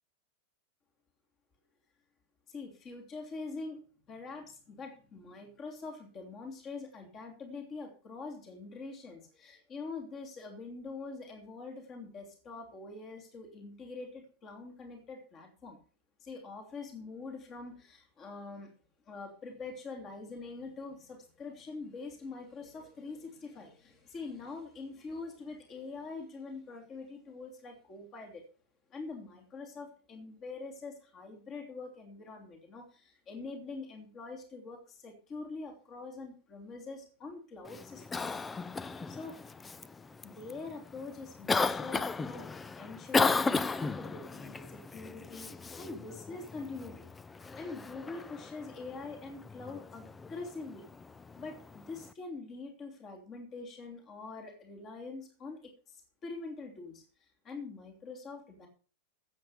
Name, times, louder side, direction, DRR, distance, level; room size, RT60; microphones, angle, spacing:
voice 1, 2.5-15.8 16.2-18.7 19.0-28.4 28.9-38.2 39.1-39.4 40.2-47.1 47.5-50.8 51.4-57.1 57.4-58.7, left 3 dB, 30° left, 2 dB, 3.1 m, -44 dB
Cough, 37.6-52.1, left 4 dB, 15° left, 0.5 m, -36 dB
13.5 x 8.1 x 5.7 m, 0.38 s
figure-of-eight pair, 90°, 0 cm